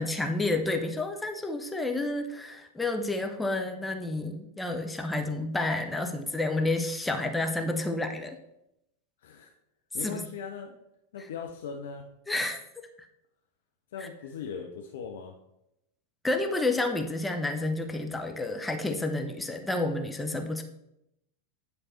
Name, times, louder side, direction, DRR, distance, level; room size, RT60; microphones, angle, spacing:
voice 1, 0.0-8.4 10.0-10.2 12.3-12.9 14.0-14.1 16.2-20.6, left 2 dB, 5° left, 5 dB, 0.7 m, -30 dB
voice 2, 9.9-10.8 11.1-12.1 13.9-15.3, left 6 dB, 60° left, 3 dB, 0.6 m, -39 dB
9.6 x 3.4 x 4.3 m, 0.84 s
figure-of-eight pair, 90°, 0 cm